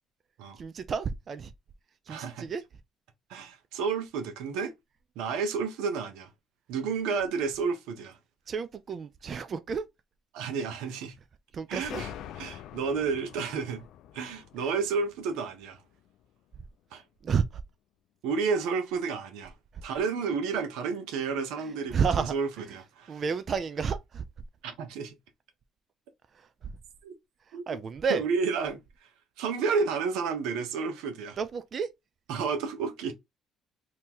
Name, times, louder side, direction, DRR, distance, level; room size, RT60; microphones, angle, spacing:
voice 1, 0.6-1.5 2.1-2.6 8.5-9.8 11.5-12.0 17.2-17.6 19.7-19.8 21.6-22.8 23.1-24.2 26.3-26.7 27.5-28.2 31.4-31.9, right 6 dB, 45° right, 0.5 m, -31 dB
voice 2, 2.1-2.5 3.3-4.7 5.2-6.3 6.7-8.2 10.3-11.1 11.7-12.1 12.4-13.8 14.1-15.8 16.9-17.0 18.2-19.5 19.8-23.2 24.6-25.1 27.0-27.1 27.5-27.8 28.1-28.8 29.4-31.4 32.3-33.1, right 5 dB, 85° right, 0.9 m, -31 dB
sound 1, 11.8-16.3, left 10 dB, 75° left, 0.3 m, -45 dB
2.9 x 2.9 x 3.6 m
supercardioid pair, 85°, 0 cm